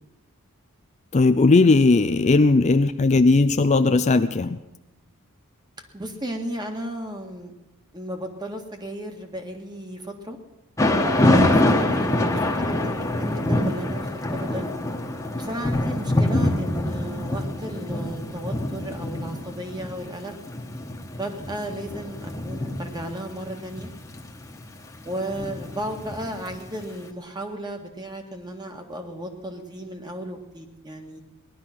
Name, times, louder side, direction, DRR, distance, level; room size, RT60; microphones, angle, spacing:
voice 1, 1.1-4.6, left 3 dB, 35° left, 10 dB, 0.5 m, -17 dB
voice 2, 5.9-7.5 7.9-10.4 11.2-14.7 15.4-20.4 21.1-23.9 25.0-31.2, right 1 dB, 20° right, 4 dB, 1.7 m, -34 dB
Thunder / Rain, 10.8-26.8, left 1 dB, 15° left, 1.4 m, -25 dB
19.0 x 11.5 x 6.0 m, 0.96 s
head